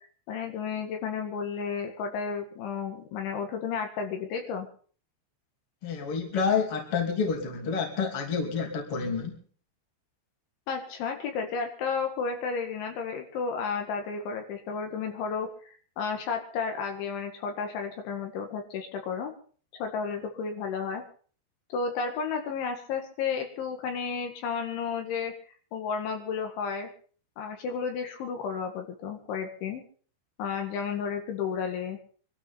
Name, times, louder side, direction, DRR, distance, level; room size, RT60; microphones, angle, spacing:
voice 1, 0.3-4.7 10.7-15.7 16.0-19.3 19.7-21.0 21.7-25.3 25.7-26.9 27.4-29.8 30.4-32.0, left 5 dB, 75° left, 4 dB, 4.3 m, -32 dB
voice 2, 5.8-9.4, left 5 dB, 35° left, 2 dB, 3.2 m, -29 dB
25.0 x 12.5 x 4.3 m, 0.43 s
omnidirectional pair, 5.5 m